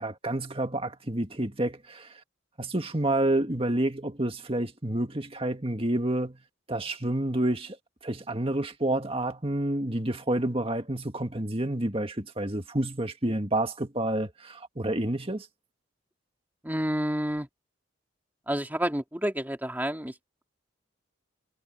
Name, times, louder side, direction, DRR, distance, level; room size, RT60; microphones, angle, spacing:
voice 1, 0.0-2.2 2.6-6.4 6.7-7.8 8.0-15.5, right 1 dB, 30° right, 1.9 m, -29 dB
voice 2, 16.6-17.5 18.5-20.1, equal, 10° right, 2.6 m, -29 dB
head